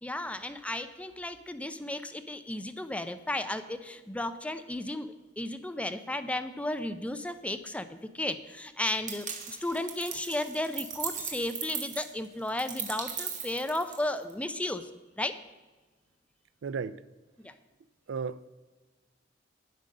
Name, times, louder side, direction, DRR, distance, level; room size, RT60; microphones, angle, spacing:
voice 1, 0.0-14.9 15.2-15.4 17.4-17.6, left 1 dB, 5° left, 0.5 m, -34 dB
sound 1, 9.1-14.3, right 7 dB, 45° right, 1.2 m, -38 dB
voice 2, 16.6-17.0 18.1-18.5, right 5 dB, 85° right, 0.4 m, -34 dB
9.8 x 7.7 x 6.5 m
head